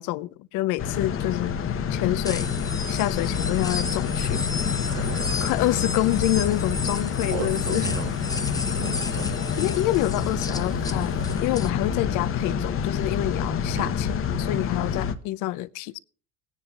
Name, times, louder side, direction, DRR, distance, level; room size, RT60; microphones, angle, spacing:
voice 1, 0.0-1.6 1.9-2.5 2.9-4.5 5.4-7.9 9.6-16.0, left 16 dB, 60° left, 0.6 m, -27 dB
sound 1, 0.8-15.1, left 7 dB, 35° left, 0.9 m, -27 dB
sound 2, 2.2-11.7, left 3 dB, 10° left, 0.8 m, -34 dB
sound 3, 4.8-11.4, right 4 dB, 50° right, 2.4 m, -43 dB
voice 2, 4.9-5.4 7.3-8.1 8.7-9.4 13.7-13.9, right 9 dB, 75° right, 1.0 m, -35 dB
19.0 x 9.8 x 2.4 m
hypercardioid pair, 80°, 36 cm